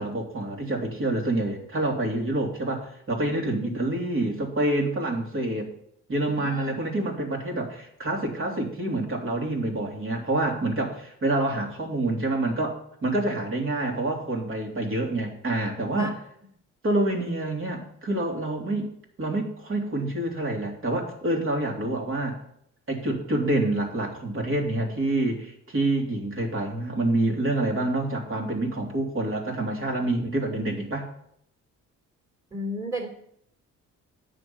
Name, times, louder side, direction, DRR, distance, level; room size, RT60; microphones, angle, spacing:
voice 1, 0.0-5.7 6.1-16.1 16.8-18.9 19.2-22.4 22.9-31.1, right 2 dB, 45° right, 2 dB, 3.1 m, -27 dB
voice 2, 6.3-6.8 16.0-16.1 32.5-33.1, equal, 10° right, -1 dB, 3.0 m, -33 dB
9.8 x 6.3 x 8.8 m, 0.71 s
cardioid pair, 90°, 30 cm